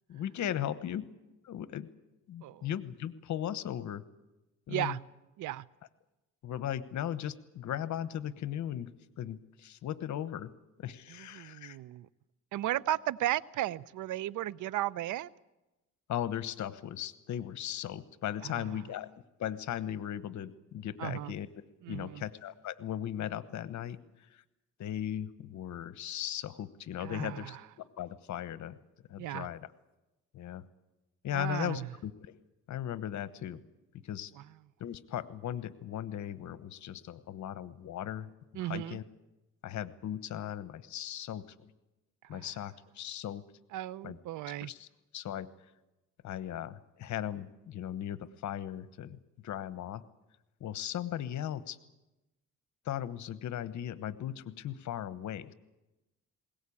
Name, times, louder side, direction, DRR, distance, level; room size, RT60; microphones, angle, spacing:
voice 1, 0.1-1.1 1.4-1.9 2.3-4.0 4.7-5.0 6.4-8.9 9.2-10.5 10.8-11.8 16.1-19.1 19.4-21.5 21.9-24.0 24.3-24.4 24.8-28.8 29.1-29.6 30.3-30.7 31.2-32.4 32.7-33.6 33.9-34.3 34.8-39.0 39.6-41.5 42.3-43.4 44.0-44.2 44.6-44.9 45.1-45.5 46.2-50.0 50.6-51.8 52.8-55.5, left 11 dB, 70° left, 14 dB, 1.2 m, -37 dB
voice 2, 4.7-5.0 5.4-5.7 11.1-12.1 12.5-15.3 18.4-18.8 21.0-21.3 21.8-22.3 27.0-27.6 29.2-29.5 31.3-31.9 34.4-34.5 38.5-39.0 42.3-42.5 43.7-44.7, right 14 dB, 85° right, 20 dB, 0.7 m, -35 dB
21.0 x 18.0 x 8.6 m, 1.0 s
cardioid pair, 90°, 30 cm